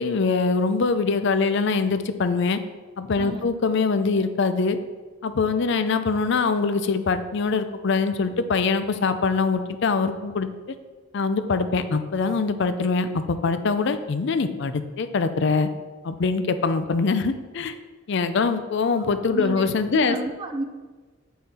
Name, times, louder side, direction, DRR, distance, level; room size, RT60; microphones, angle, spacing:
voice 1, 0.0-2.6 3.0-4.8 5.2-10.5 11.1-15.7 16.0-17.7 18.1-20.2, left 4 dB, 60° left, 10 dB, 0.5 m, -23 dB
voice 2, 3.2-3.5 18.9-19.0 19.3-20.6, right 2 dB, 25° right, 6 dB, 0.5 m, -31 dB
7.8 x 5.5 x 4.2 m, 1.3 s
head